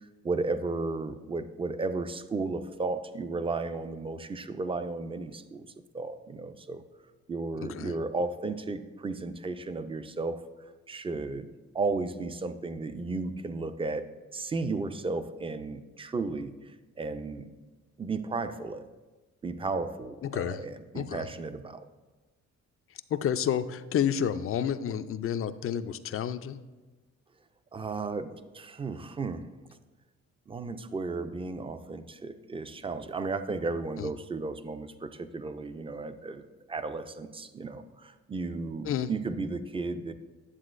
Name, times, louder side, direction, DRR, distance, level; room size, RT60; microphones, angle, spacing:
voice 1, 0.2-5.7 5.9-6.8 7.3-10.4 10.9-11.5 11.7-14.1 14.3-16.5 17.0-17.5 18.0-18.8 19.4-21.8 27.7-28.3 28.5-29.5 30.5-36.4 36.7-40.1, right 3 dB, 20° right, 10 dB, 0.4 m, -34 dB
voice 2, 20.2-20.6 20.9-21.3 23.1-26.6 34.0-34.1 38.8-39.1, left 9 dB, 45° left, 12 dB, 0.4 m, -30 dB
9.7 x 7.2 x 2.5 m, 1.2 s
cardioid pair, 90°, 30 cm